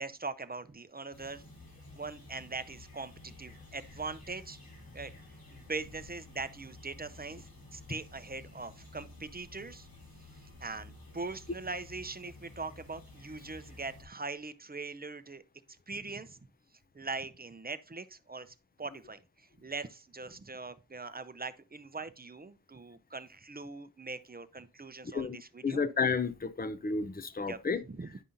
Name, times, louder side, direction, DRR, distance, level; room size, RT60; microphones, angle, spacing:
voice 1, 0.0-1.4 1.9-4.6 4.9-5.1 5.5-9.9 10.4-15.4 15.9-16.4 16.9-19.2 19.6-25.8 27.5-27.6 27.9-28.1, right 3 dB, 25° right, 0.6 m, -41 dB
sound 1, 1.1-14.0, left 2 dB, 70° left, 2.9 m, -52 dB
voice 2, 25.0-25.4 25.6-27.8, left 5 dB, 25° left, 0.6 m, -31 dB
10.0 x 5.4 x 2.6 m
wide cardioid pair, 50°, 36 cm